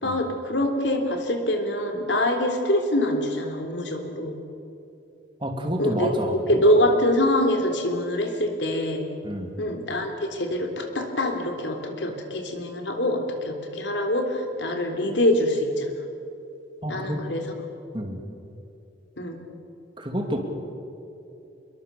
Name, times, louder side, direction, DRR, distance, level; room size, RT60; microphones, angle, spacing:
voice 1, 0.0-4.4 5.8-6.2 6.5-9.1 9.6-15.9 16.9-17.4 19.2-19.4, left 1 dB, 70° left, 4 dB, 3.3 m, -24 dB
voice 2, 5.4-6.4 9.2-9.5 16.8-17.2 17.9-18.2 20.0-20.4, equal, 25° right, 3 dB, 2.7 m, -29 dB
26.0 x 22.5 x 6.9 m, 2.8 s
head